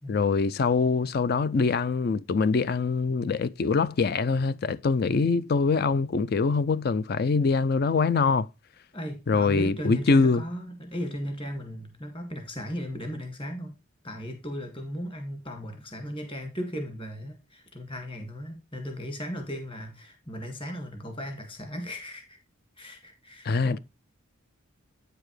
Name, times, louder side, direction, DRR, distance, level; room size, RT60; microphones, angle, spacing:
voice 1, 0.1-8.5 9.3-10.4 23.4-23.8, left 4 dB, 45° left, 0.4 m, -24 dB
voice 2, 8.9-13.8 14.0-22.4 22.8-23.8, equal, 25° left, 1.9 m, -36 dB
8.9 x 6.8 x 3.1 m
head